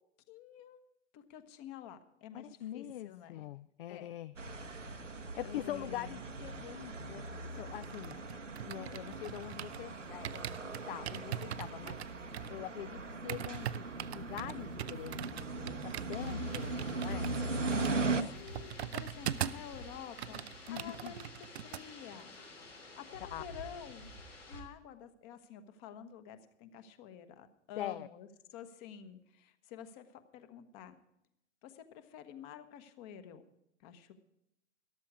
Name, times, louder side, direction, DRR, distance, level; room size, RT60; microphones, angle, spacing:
voice 1, 0.3-0.8 1.1-2.5 2.7-3.4 3.9-4.1 5.4-6.2 18.1-30.9 31.6-33.4 33.8-34.1, left 8 dB, 35° left, 10 dB, 1.3 m, -50 dB
voice 2, 2.3-4.4 5.4-8.2 8.6-10.5 10.9-12.0 12.5-17.3 20.7-21.1 23.3-23.4 27.8-28.1, left 13 dB, 50° left, 18 dB, 0.4 m, -43 dB
sound 1, 4.4-18.2, right 3 dB, 90° right, 1.0 m, -39 dB
sound 2, 7.6-9.9 10.2-19.7 20.0-21.8 22.1-22.4, right 10 dB, 65° right, 0.6 m, -42 dB
sound 3, 16.1-24.6, left 1 dB, 85° left, 3.4 m, -51 dB
13.5 x 12.5 x 4.8 m, 0.81 s
figure-of-eight pair, 105°, 36 cm